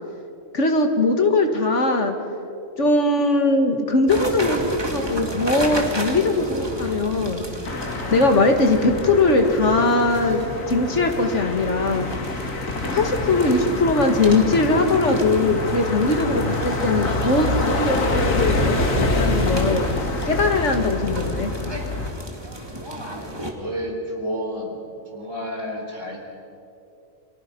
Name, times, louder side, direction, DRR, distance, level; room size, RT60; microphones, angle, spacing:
voice 1, 0.5-2.1 2.8-7.4 8.1-10.4 10.7-12.1 12.9-21.5, left 2 dB, 60° left, 4 dB, 2.3 m, -20 dB
sound 1, 4.1-23.5, right 1 dB, 20° right, 2.4 m, -33 dB
sound 2, 7.6-22.1, left 2 dB, 75° left, 2.4 m, -26 dB
voice 2, 22.9-24.7 25.1-26.2, equal, 65° right, 0 dB, 4.7 m, -31 dB
29.0 x 24.5 x 5.5 m, 2.7 s
omnidirectional pair, 1.4 m